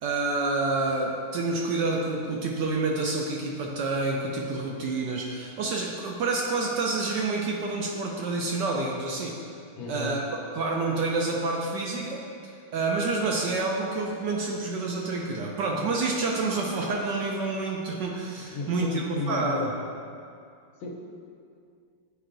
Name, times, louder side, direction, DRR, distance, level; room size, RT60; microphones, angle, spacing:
voice 1, 0.0-9.4 9.9-12.2 12.7-19.7, right 3 dB, 70° right, -1 dB, 1.1 m, -28 dB
voice 2, 9.7-10.2 18.4-19.7 20.8-20.9, left 3 dB, 80° left, -1 dB, 1.7 m, -33 dB
9.7 x 4.4 x 2.5 m, 2.4 s
omnidirectional pair, 2.3 m